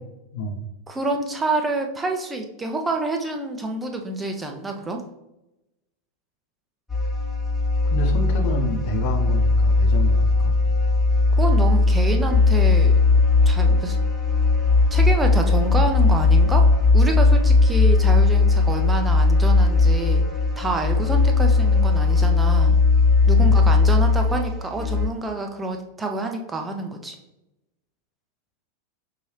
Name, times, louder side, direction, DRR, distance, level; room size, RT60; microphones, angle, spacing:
voice 1, 0.3-0.6 7.8-10.5 23.4-23.6, equal, 45° left, 3 dB, 0.8 m, -28 dB
voice 2, 0.9-5.0 11.3-12.9 13.5-14.0 14.9-20.2 20.6-22.8 23.3-27.2, right 2 dB, 15° right, 4 dB, 0.6 m, -27 dB
sound 1, 6.9-25.1, left 3 dB, 5° left, 1.1 m, -18 dB
5.7 x 2.7 x 3.2 m, 0.95 s
figure-of-eight pair, 90°, 0 cm